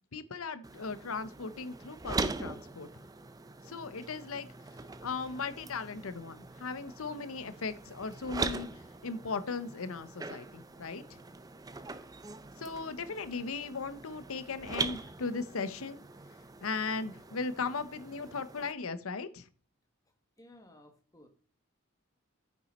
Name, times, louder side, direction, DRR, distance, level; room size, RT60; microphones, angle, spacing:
voice 1, 0.1-3.0 3.6-4.5 5.0-8.7 9.0-11.2 12.6-16.0 16.6-19.5, left 4 dB, 75° left, 13 dB, 0.8 m, -37 dB
sound 1, 0.6-18.7, right 3 dB, 15° right, 0.4 m, -42 dB
voice 2, 20.4-21.3, left 1 dB, 15° left, 4 dB, 1.5 m, -56 dB
9.2 x 6.1 x 4.2 m, 0.42 s
head